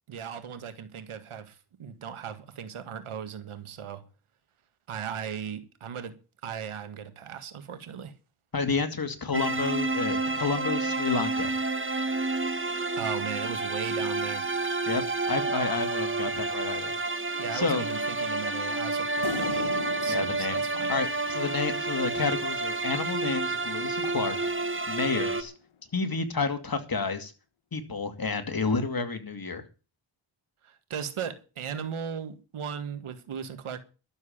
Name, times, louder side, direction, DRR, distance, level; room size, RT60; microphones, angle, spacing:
voice 1, 0.1-4.0 4.9-6.1 6.4-8.1 13.0-14.5 17.4-19.7 20.0-20.9 30.6-33.8, right 7 dB, 90° right, 1.9 m, -37 dB
voice 2, 8.5-11.5 14.9-16.9 17.5-17.8 20.1-20.6 20.9-24.4 24.9-25.5 25.9-27.3 27.7-29.7, left 4 dB, 45° left, 2.7 m, -30 dB
sound 1, 9.3-25.4, right 3 dB, 25° right, 1.8 m, -30 dB
sound 2, 19.2-21.9 23.3-25.4, left 7 dB, 80° left, 1.9 m, -40 dB
12.5 x 7.4 x 8.8 m
cardioid pair, 50°, 48 cm